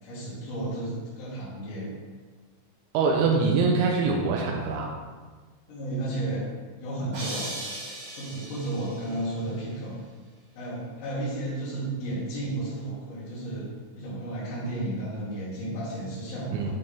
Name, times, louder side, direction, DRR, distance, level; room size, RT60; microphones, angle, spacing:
voice 1, 0.0-1.9 5.7-6.5 6.8-7.6 8.2-10.0 10.6-13.7 14.0-16.7, right 1 dB, 85° left, -12 dB, 5.1 m, -33 dB
voice 2, 2.9-4.9 16.5-16.7, right 4 dB, 80° right, -1 dB, 2.8 m, -24 dB
sound 1, 7.1-9.2, right 1 dB, 40° right, 1.8 m, -37 dB
11.5 x 4.3 x 3.6 m, 1.4 s
omnidirectional pair, 6.0 m